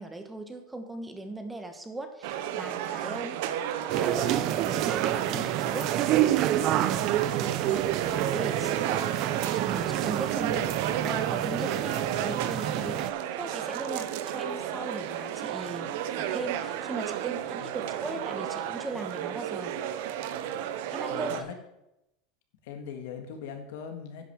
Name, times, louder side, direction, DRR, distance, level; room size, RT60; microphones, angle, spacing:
voice 1, 0.0-3.4 4.0-6.3 7.4-13.0 13.4-15.9 16.1-19.7 20.9-21.5, right 2 dB, 10° right, 6 dB, 1.1 m, -39 dB
sound 1, 2.2-21.4, right 10 dB, 70° right, 0.8 m, -32 dB
sound 2, 3.9-13.1, right 13 dB, 50° right, 0.5 m, -29 dB
voice 2, 17.6-17.9 20.3-20.5 21.1-21.6 22.6-24.3, left 7 dB, 80° left, 6 dB, 1.7 m, -42 dB
10.5 x 5.8 x 6.0 m, 0.88 s
supercardioid pair, 135°, 0 cm